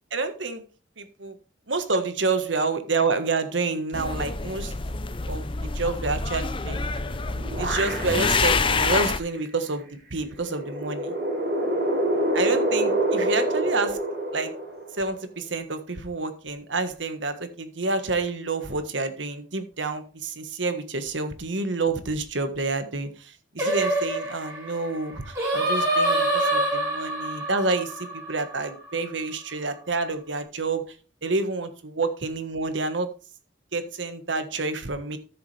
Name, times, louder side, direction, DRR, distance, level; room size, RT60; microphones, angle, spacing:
voice 1, 0.1-0.6 1.0-1.3 1.7-4.7 5.3-6.9 7.6-11.1 12.3-14.0 14.3-14.5 15.0-30.9 31.2-33.1 33.7-35.2, right 3 dB, 80° right, 9 dB, 1.5 m, -28 dB
sound 1, 3.9-9.2, left 4 dB, 30° left, 0.6 m, -27 dB
sound 2, 6.9-8.5 9.0-9.1 10.4-15.2, right 1 dB, 55° right, 5.7 m, -26 dB
Singing, 23.6-28.9, right 1 dB, 20° right, 6.6 m, -26 dB
13.5 x 7.1 x 3.4 m, 0.36 s
head